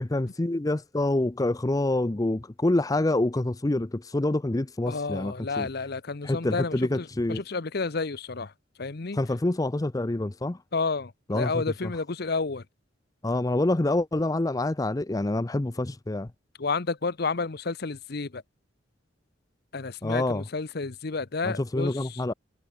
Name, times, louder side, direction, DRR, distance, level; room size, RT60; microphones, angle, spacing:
voice 1, 0.0-5.7 6.2-7.4 9.1-10.6 11.3-11.6 13.2-16.3 20.0-20.4 21.4-22.3, left 2 dB, 20° left, 0.5 m, -26 dB
voice 2, 4.9-8.5 8.8-9.2 10.7-12.6 16.6-18.4 19.7-22.2, left 4 dB, 55° left, 0.9 m, -31 dB
head